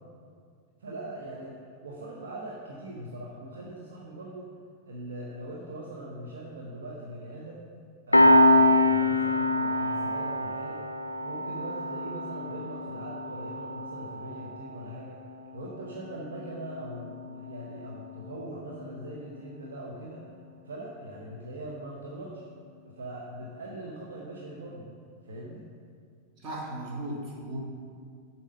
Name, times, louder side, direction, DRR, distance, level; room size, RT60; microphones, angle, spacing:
voice 1, 0.8-4.5 4.9-7.6 8.1-10.9 11.2-15.2 15.5-20.2 20.7-22.5 23.0-24.9 25.2-25.6, right 1 dB, 65° right, -3 dB, 0.8 m, -41 dB
Piano, 8.1-19.2, left 1 dB, 85° left, 0.4 m, -26 dB
voice 2, 26.4-27.6, right 1 dB, 40° right, -3 dB, 1.7 m, -36 dB
7.2 x 4.4 x 5.3 m, 2.2 s
figure-of-eight pair, 90°, 0 cm